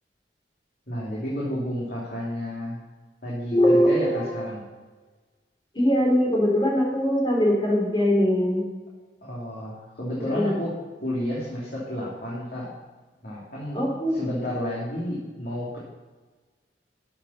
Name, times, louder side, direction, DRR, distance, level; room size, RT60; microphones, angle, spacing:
voice 1, 0.9-2.8 3.2-4.6 9.2-10.7 11.0-12.7 13.2-15.8, left 1 dB, 55° left, -7 dB, 2.9 m, -31 dB
voice 2, 3.5-4.3 5.7-8.6 10.2-10.5 13.7-14.1, equal, 25° left, -3 dB, 4.1 m, -21 dB
13.0 x 7.4 x 5.7 m, 1.3 s
head